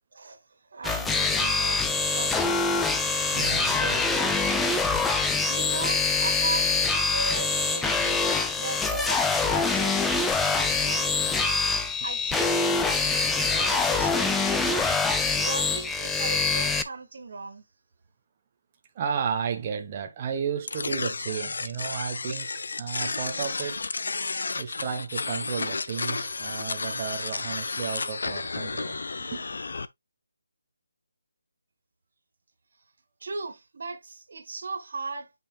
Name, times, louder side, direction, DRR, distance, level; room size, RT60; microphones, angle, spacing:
voice 1, 0.1-2.9 5.5-10.1 10.3-11.6 12.0-13.2 13.5-14.9 15.4-17.6 33.2-35.3, right 3 dB, 45° right, 2.0 m, -37 dB
sound 1, 0.8-16.8, left 4 dB, 5° left, 0.3 m, -25 dB
voice 2, 3.3-4.9 14.7-14.8 18.9-22.5 22.8-23.8 24.6-29.4, right 7 dB, 20° right, 0.9 m, -33 dB
sound 2, 20.7-29.9, left 4 dB, 55° left, 0.6 m, -32 dB
8.5 x 5.4 x 2.2 m
hypercardioid pair, 175°, 0 cm